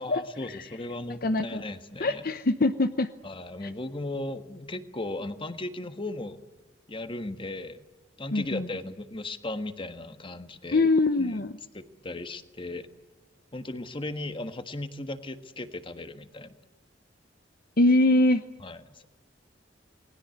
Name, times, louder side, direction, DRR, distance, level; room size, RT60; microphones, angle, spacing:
voice 1, 0.0-2.3 3.2-6.4 6.9-7.8 8.2-10.9 11.2-11.5 11.7-12.9 13.5-16.5 18.6-19.1, left 2 dB, 30° left, 9 dB, 1.5 m, -36 dB
voice 2, 1.2-1.6 2.0-3.1 3.6-3.7 8.3-8.7 10.7-11.5 17.8-18.4, left 2 dB, 50° left, 10 dB, 0.8 m, -23 dB
28.5 x 20.5 x 7.9 m, 1.2 s
head